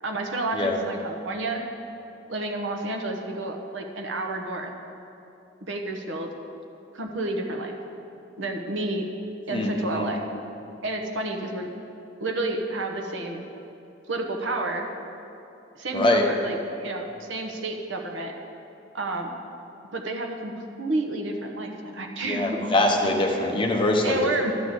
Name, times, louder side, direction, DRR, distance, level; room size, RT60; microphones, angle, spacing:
voice 1, 0.0-1.6 2.3-4.7 5.7-6.3 6.9-7.8 8.4-9.0 9.5-10.2 10.8-11.7 12.2-13.5 14.1-14.9 15.7-18.3 18.9-19.3 19.9-20.5 20.8-22.9 24.0-24.5, right 2 dB, 70° right, 3 dB, 1.0 m, -30 dB
voice 2, 9.5-10.1 15.9-16.2 22.2-24.3, left 1 dB, 25° left, 1 dB, 0.9 m, -23 dB
12.5 x 4.1 x 7.9 m, 2.9 s
head